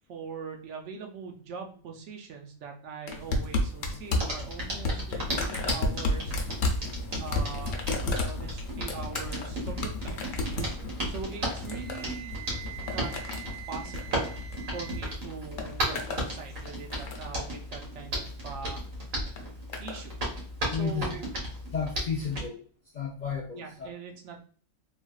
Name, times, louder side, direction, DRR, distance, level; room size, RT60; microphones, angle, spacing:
voice 1, 0.1-6.4 7.2-7.8 8.2-10.3 11.1-12.4 12.8-13.1 13.7-14.2 14.7-18.8 19.8-20.2 20.7-21.3 22.2-22.5 23.5-24.4, right 5 dB, 70° right, 3 dB, 0.9 m, -41 dB
sound 1, 3.1-15.0 15.3-16.3 16.7-17.4 18.3-18.6 19.4-20.0 20.9-21.0, left 2 dB, 85° left, 1.0 m, -32 dB
Hands, 4.2-22.5, equal, 90° right, 1.5 m, -35 dB
Wind instrument woodwind instrument, 11.6-15.2, right 12 dB, 45° right, 0.4 m, -45 dB
voice 2, 20.7-21.2 21.7-22.6 22.9-23.9, left 6 dB, 50° left, -4 dB, 0.5 m, -32 dB
3.3 x 2.3 x 2.3 m, 0.42 s
omnidirectional pair, 1.3 m